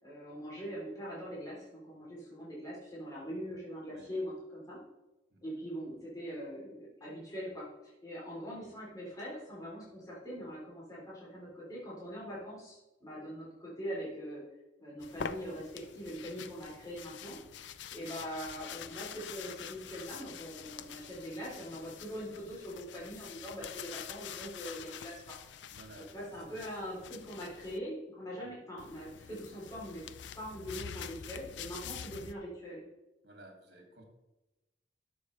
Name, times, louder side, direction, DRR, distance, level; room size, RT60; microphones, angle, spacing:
voice 1, 0.0-4.8 5.4-14.4 14.8-17.4 17.9-25.4 26.1-30.0 30.4-32.8, equal, 20° left, -7 dB, 3.3 m, -42 dB
sound 1, 15.0-27.8 28.8-32.3, left 8 dB, 70° left, 0.5 m, -46 dB
voice 2, 25.7-26.6 28.4-28.5 33.2-34.0, right 1 dB, 65° right, 2 dB, 2.3 m, -55 dB
12.0 x 7.0 x 3.2 m, 1.0 s
head